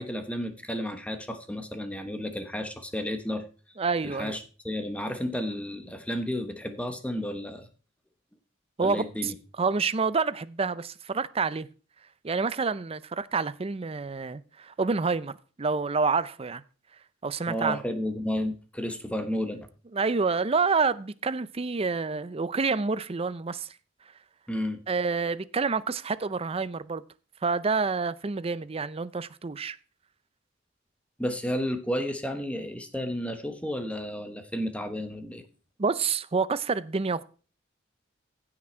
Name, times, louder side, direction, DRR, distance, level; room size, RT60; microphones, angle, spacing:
voice 1, 0.0-3.5 4.0-7.7 8.8-9.3 17.5-19.7 24.5-24.8 31.2-35.4, equal, 5° left, 1.1 m, -32 dB
voice 2, 3.8-4.4 8.8-11.7 12.2-15.3 15.6-16.6 17.2-17.8 19.9-23.8 24.9-27.0 27.4-29.8 35.8-37.2, right 4 dB, 30° right, 0.5 m, -28 dB
16.0 x 6.0 x 4.4 m
head